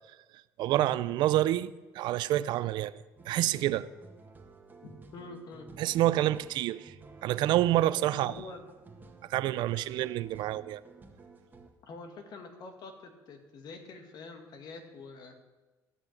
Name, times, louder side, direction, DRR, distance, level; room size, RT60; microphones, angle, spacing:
voice 1, 0.6-2.9 3.3-3.9 5.8-6.9 7.2-8.3 9.3-10.8, right 14 dB, 80° right, 0.5 m, -28 dB
sound 1, 3.2-11.7, right 3 dB, 25° right, 1.8 m, -53 dB
voice 2, 4.8-5.7 8.1-8.6 11.9-15.4, left 3 dB, 65° left, 2.1 m, -46 dB
13.5 x 6.2 x 9.1 m
cardioid pair, 95°, 8 cm